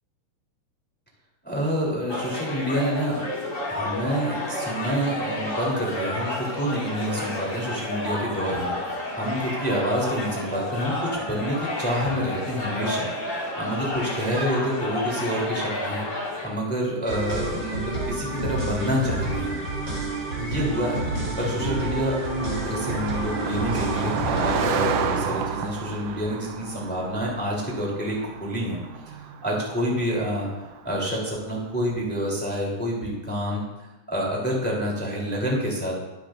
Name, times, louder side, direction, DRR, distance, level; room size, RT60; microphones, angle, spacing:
voice 1, 1.4-3.3 3.7-13.1 13.6-16.0 16.4-19.6 20.4-21.0 21.4-28.8 29.1-30.5 30.8-33.6 34.1-35.9, equal, 5° left, -4 dB, 3.0 m, -28 dB
sound 1, 2.1-16.5, left 1 dB, 25° left, 2.2 m, -31 dB
sound 2, 17.1-24.8, right 1 dB, 30° right, 3.7 m, -29 dB
Car passing by, 18.1-31.8, right 7 dB, 80° right, 1.3 m, -33 dB
23.0 x 9.0 x 2.6 m, 1.0 s
omnidirectional pair, 3.7 m